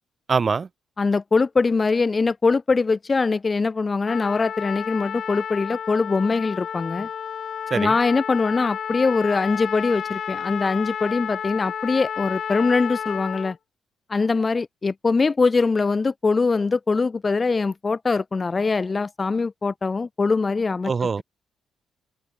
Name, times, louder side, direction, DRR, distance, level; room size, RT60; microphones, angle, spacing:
voice 1, 0.3-0.7 7.7-8.0 20.8-21.2, right 5 dB, 35° right, 0.5 m, -23 dB
voice 2, 1.0-7.1 7.7-13.6 14.1-20.9, left 4 dB, 30° left, 1.5 m, -22 dB
Trumpet, 4.1-13.6, left 8 dB, 55° left, 3.2 m, -31 dB
open air
cardioid pair, 90°, 0 cm